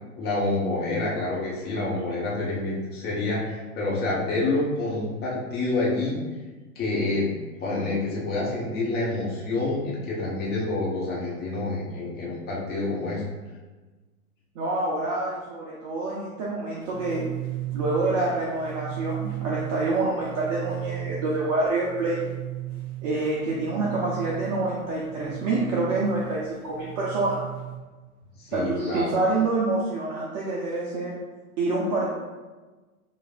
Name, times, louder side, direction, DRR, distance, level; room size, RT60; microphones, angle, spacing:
voice 1, 0.2-6.2 6.7-7.3 7.6-13.2 28.4-29.2, left 2 dB, 20° left, -6 dB, 1.3 m, -27 dB
voice 2, 14.6-17.3 17.7-22.2 23.0-27.4 28.5-31.2 31.6-32.1, right 2 dB, 25° right, -4 dB, 0.5 m, -27 dB
sound 1, 16.8-27.8, right 15 dB, 75° left, 1.2 m, -36 dB
6.5 x 2.6 x 2.5 m, 1.3 s
hypercardioid pair, 115°, 44 cm